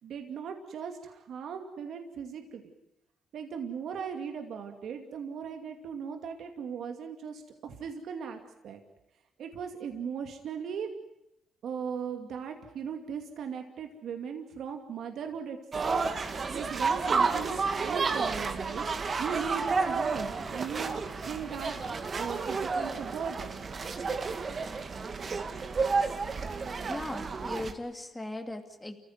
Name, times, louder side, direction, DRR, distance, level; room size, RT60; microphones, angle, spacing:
voice 1, 0.0-2.6 3.3-8.8 9.4-10.9 11.6-16.0 16.5-23.6, right 7 dB, 70° right, 5 dB, 2.5 m, -38 dB
sound 1, 15.7-27.7, right 4 dB, 40° right, 2.4 m, -31 dB
voice 2, 26.9-29.0, left 2 dB, 15° left, 5 dB, 2.6 m, -38 dB
29.0 x 15.5 x 9.3 m, 0.84 s
cardioid pair, 90°, 0 cm